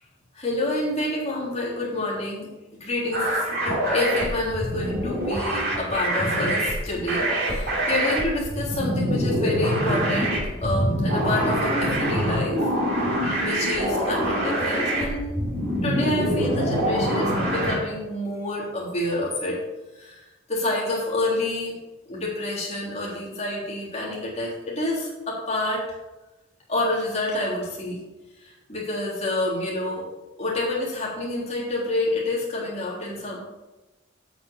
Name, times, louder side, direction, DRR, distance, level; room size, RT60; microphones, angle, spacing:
voice 1, 0.3-2.5 2.8-12.6 13.4-15.3 15.8-19.6 19.9-21.7 22.1-26.0 26.7-28.0 28.4-30.1 30.4-33.4, left 2 dB, 30° left, -5 dB, 3.4 m, -28 dB
sound 1, 3.1-17.8, equal, 50° right, 3.1 m, -25 dB
8.5 x 6.2 x 7.4 m, 1.1 s
head